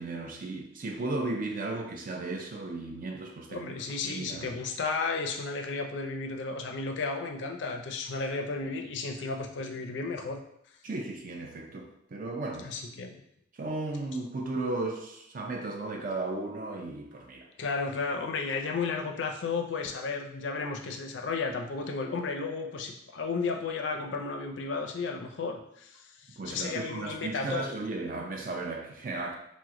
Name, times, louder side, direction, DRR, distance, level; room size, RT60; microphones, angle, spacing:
voice 1, 0.0-3.7 4.0-4.6 10.8-12.7 13.5-17.5 26.4-29.3, right 2 dB, 45° right, 3 dB, 0.4 m, -35 dB
voice 2, 3.5-10.4 12.6-13.2 17.6-26.0 26.5-27.7, left 4 dB, 65° left, 3 dB, 0.4 m, -33 dB
3.0 x 2.1 x 3.6 m, 0.77 s
head